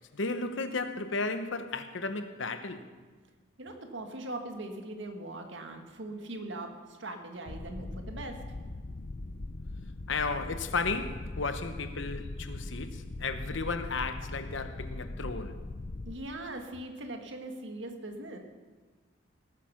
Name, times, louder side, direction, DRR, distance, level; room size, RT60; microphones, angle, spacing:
voice 1, 0.1-2.8 10.1-15.5, left 3 dB, 65° left, 1.0 m, -34 dB
voice 2, 3.6-8.4 16.1-18.4, right 2 dB, 65° right, 1.8 m, -40 dB
sound 1, 7.5-16.1, left 2 dB, 45° left, 0.6 m, -40 dB
18.0 x 9.9 x 5.9 m
head